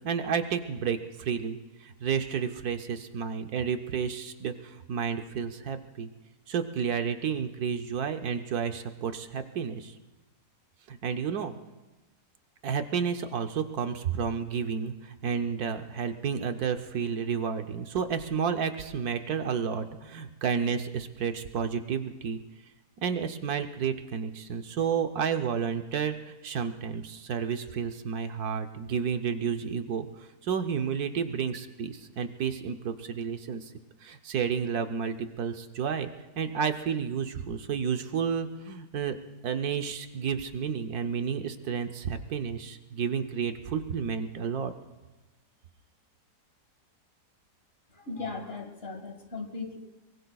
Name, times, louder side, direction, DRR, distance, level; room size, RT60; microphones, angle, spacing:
voice 1, 0.0-6.1 6.5-9.9 10.9-11.5 12.6-22.4 23.0-33.7 34.0-36.1 36.4-39.1 39.4-44.7, right 6 dB, 75° right, 7 dB, 1.3 m, -31 dB
voice 2, 47.9-49.8, left 3 dB, 40° left, 4 dB, 1.9 m, -38 dB
23.5 x 23.5 x 2.3 m, 1.1 s
omnidirectional pair, 1.7 m